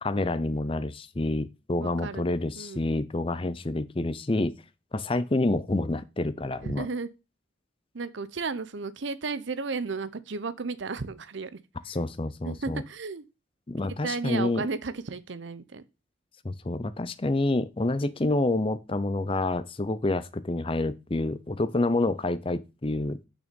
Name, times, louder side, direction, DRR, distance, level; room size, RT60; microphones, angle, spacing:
voice 1, 0.0-4.6 4.9-6.9 11.9-12.8 13.7-14.6 16.4-23.2, left 2 dB, 25° left, 0.5 m, -28 dB
voice 2, 1.8-2.2 2.6-2.8 6.6-7.1 7.9-11.6 12.5-13.2 14.0-15.8, right 4 dB, 65° right, 0.7 m, -33 dB
6.6 x 6.1 x 5.3 m
head